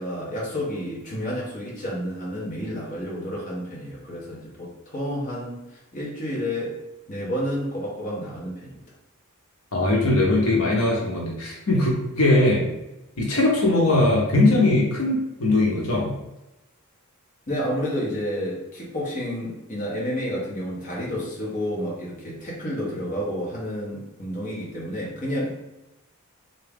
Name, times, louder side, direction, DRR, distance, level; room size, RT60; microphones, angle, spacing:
voice 1, 0.0-6.8 7.1-8.8 17.5-25.5, equal, 35° left, -5 dB, 1.0 m, -30 dB
voice 2, 9.7-12.6 13.2-16.1, left 2 dB, 70° left, -3 dB, 1.0 m, -20 dB
3.5 x 2.7 x 3.4 m, 0.96 s
head